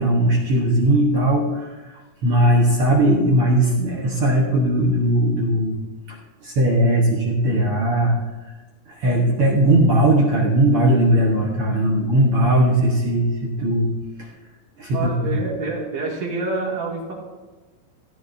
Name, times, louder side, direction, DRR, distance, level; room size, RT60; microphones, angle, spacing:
voice 1, 0.0-1.8 2.2-5.8 6.1-6.2 6.4-8.2 8.9-13.9 14.2-14.3 14.8-15.1, right 1 dB, 75° right, -2 dB, 1.2 m, -18 dB
voice 2, 14.9-17.1, right 3 dB, 50° right, -3 dB, 3.3 m, -27 dB
17.0 x 13.0 x 2.7 m, 1.2 s
omnidirectional pair, 4.3 m